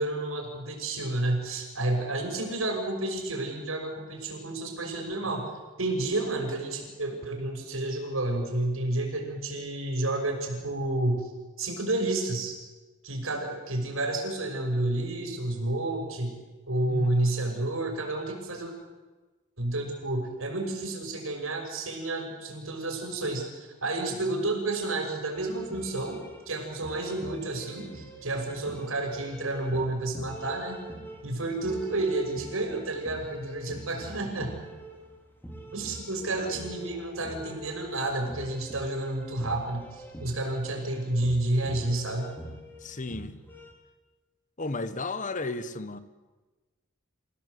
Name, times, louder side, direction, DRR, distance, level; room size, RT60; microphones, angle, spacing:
voice 1, 0.0-5.5 5.8-11.3 11.6-12.5 13.0-16.4 16.7-18.7 19.6-30.8 31.2-34.5 35.7-42.3, right 2 dB, 85° right, 6.1 m, -30 dB
sound 1, 25.3-43.7, right 1 dB, 10° left, 3.5 m, -44 dB
voice 2, 42.8-43.4 44.6-46.0, left 3 dB, 40° left, 1.2 m, -34 dB
28.0 x 16.5 x 8.2 m
head